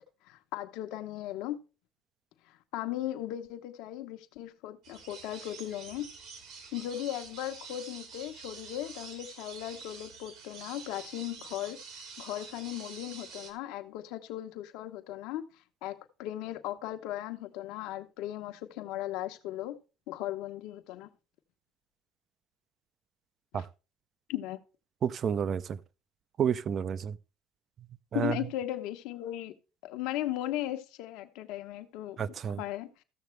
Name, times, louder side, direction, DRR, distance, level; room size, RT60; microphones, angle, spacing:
voice 1, 0.2-1.6 2.5-6.1 6.7-11.8 12.2-15.4 15.8-19.7 20.1-21.1 23.5-23.7 24.3-24.6 28.1-29.5 29.8-32.2 32.6-33.0, left 13 dB, 80° left, 1.0 m, -37 dB
sound 1, 4.8-13.5, right 5 dB, 70° right, 2.7 m, -47 dB
voice 2, 25.0-25.8 26.4-27.2 28.1-28.4 32.2-32.6, right 8 dB, 45° right, 0.5 m, -30 dB
14.5 x 6.7 x 3.3 m
cardioid pair, 110°, 0 cm